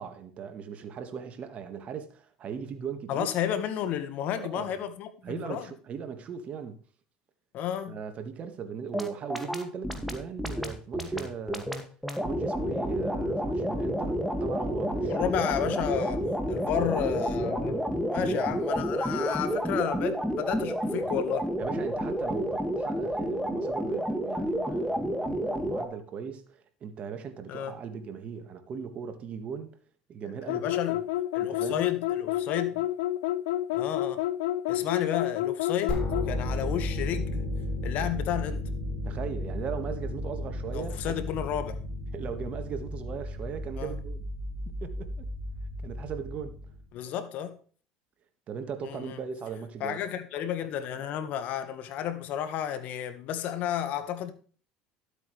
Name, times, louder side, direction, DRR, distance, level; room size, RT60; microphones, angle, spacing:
voice 1, 0.0-3.3 4.4-4.8 5.2-6.8 7.9-11.7 12.2-15.3 17.9-18.4 21.6-29.8 30.1-30.7 31.4-31.8 39.0-41.4 42.1-44.2 44.8-45.3 45.8-46.6 48.5-50.0, right 7 dB, 45° right, 1.7 m, -38 dB
voice 2, 3.1-5.7 7.5-8.0 15.0-17.8 18.1-21.5 27.5-27.8 30.5-31.0 31.3-32.9 33.7-34.2 34.7-37.5 37.8-38.7 40.7-41.8 43.8-43.9 46.9-47.6 48.8-49.2 49.8-54.3, left 10 dB, 60° left, 1.5 m, -32 dB
sound 1, 8.9-25.9, equal, ahead, 2.0 m, -30 dB
sound 2, 30.5-36.3, left 14 dB, 85° left, 0.5 m, -29 dB
sound 3, 35.9-46.9, left 1 dB, 30° left, 5.7 m, -34 dB
12.5 x 8.4 x 3.3 m
supercardioid pair, 95°, 3 cm